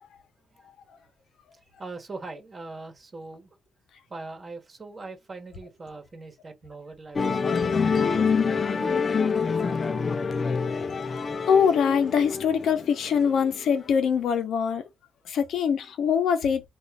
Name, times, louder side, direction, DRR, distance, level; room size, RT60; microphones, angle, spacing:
voice 1, 1.8-3.5 4.1-9.1, right 3 dB, 35° right, 1.1 m, -41 dB
Musical instrument, 7.1-13.8, left 5 dB, 40° left, 0.4 m, -26 dB
voice 2, 11.5-14.8 15.3-16.6, left 7 dB, 75° left, 0.8 m, -23 dB
3.0 x 2.5 x 3.5 m
cardioid pair, 95°, 0 cm